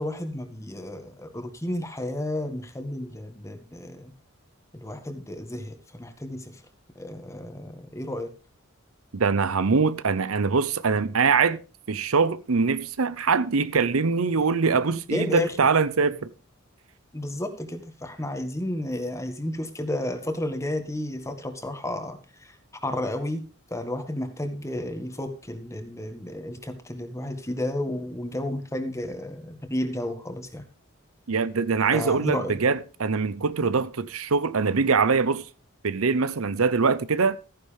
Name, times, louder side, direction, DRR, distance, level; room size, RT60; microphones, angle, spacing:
voice 1, 0.0-4.1 4.7-6.4 7.0-8.3 15.1-15.5 17.1-22.2 22.8-23.4 23.7-30.6 31.9-32.5, left 1 dB, 15° left, 1.8 m, -32 dB
voice 2, 9.1-11.6 11.9-16.3 31.3-35.4 35.8-37.4, right 5 dB, 85° right, 0.7 m, -23 dB
14.0 x 10.0 x 3.5 m
head